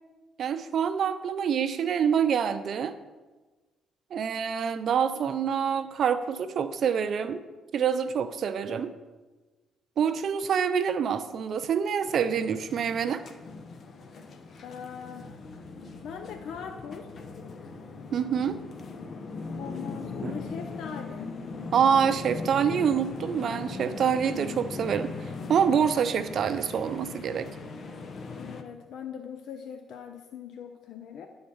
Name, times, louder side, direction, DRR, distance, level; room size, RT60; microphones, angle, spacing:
voice 1, 0.4-2.9 4.1-7.4 7.7-8.9 10.0-13.2 18.1-18.6 20.2-20.3 21.7-27.5, right 7 dB, 60° right, 11 dB, 0.5 m, -26 dB
driving with city bus, 12.0-28.6, left 4 dB, 50° left, 0.9 m, -39 dB
voice 2, 14.6-15.3 15.9-17.1 19.6-21.3 28.4-31.3, left 7 dB, 75° left, 5 dB, 0.6 m, -41 dB
10.5 x 4.0 x 7.1 m, 1.2 s
cardioid pair, 90°, 0 cm